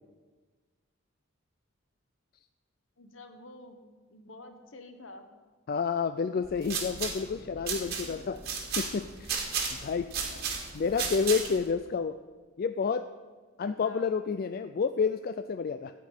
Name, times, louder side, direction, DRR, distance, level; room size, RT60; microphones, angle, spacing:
voice 1, 3.0-5.3 8.0-8.2 10.2-10.6 13.8-14.2, left 2 dB, 65° left, 7 dB, 1.3 m, -50 dB
voice 2, 5.7-8.4 8.8-9.4 9.8-10.1 10.7-12.2 12.6-13.1 13.6-15.9, left 5 dB, 45° left, 10 dB, 0.3 m, -29 dB
sound 1, 6.4-11.7, right 5 dB, 50° right, 1.9 m, -34 dB
13.0 x 5.3 x 8.9 m, 1.4 s
head